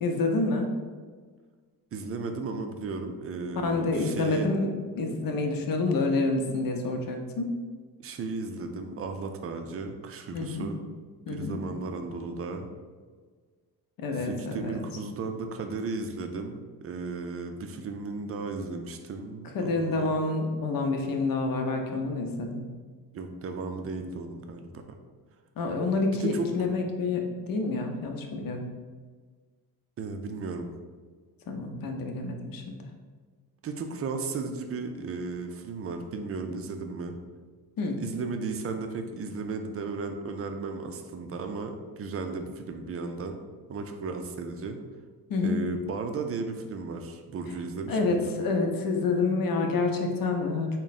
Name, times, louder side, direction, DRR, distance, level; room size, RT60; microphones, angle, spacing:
voice 1, 0.0-0.7 3.6-4.7 4.9-7.5 10.3-10.7 11.3-11.6 14.0-14.8 19.5-22.6 25.6-28.6 31.5-32.8 37.8-38.0 45.3-45.6 47.9-50.7, left 3 dB, 60° left, 3 dB, 0.7 m, -28 dB
voice 2, 1.9-4.5 8.0-10.8 11.3-12.7 14.1-20.1 23.1-25.0 26.2-26.5 30.0-30.7 33.6-37.2 38.0-43.4 43.7-44.8 45.4-48.3, right 4 dB, 35° right, 6 dB, 0.5 m, -35 dB
3.6 x 2.2 x 4.0 m, 1.5 s
cardioid pair, 85°, 39 cm